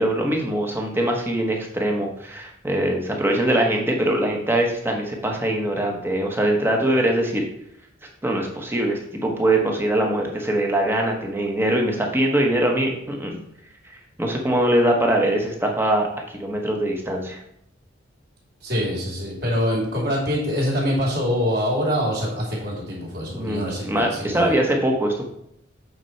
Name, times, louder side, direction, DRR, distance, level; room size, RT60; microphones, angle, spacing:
voice 1, 0.0-7.4 8.2-13.4 14.2-17.4 23.3-25.2, right 1 dB, 10° right, 1 dB, 1.1 m, -22 dB
voice 2, 18.6-24.5, equal, 55° right, -3 dB, 2.8 m, -24 dB
8.1 x 4.5 x 4.5 m, 0.75 s
head